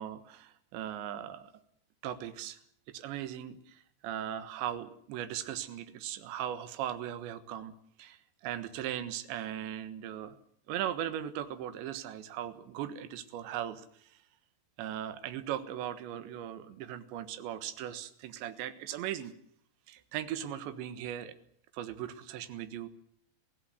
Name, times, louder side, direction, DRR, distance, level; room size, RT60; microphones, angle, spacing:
voice 1, 0.0-1.5 2.0-2.6 2.9-10.4 10.7-14.1 14.8-19.3 19.9-21.3 21.7-22.9, right 11 dB, 80° right, 10 dB, 3.7 m, -38 dB
23.0 x 16.0 x 9.4 m, 0.66 s
omnidirectional pair, 5.2 m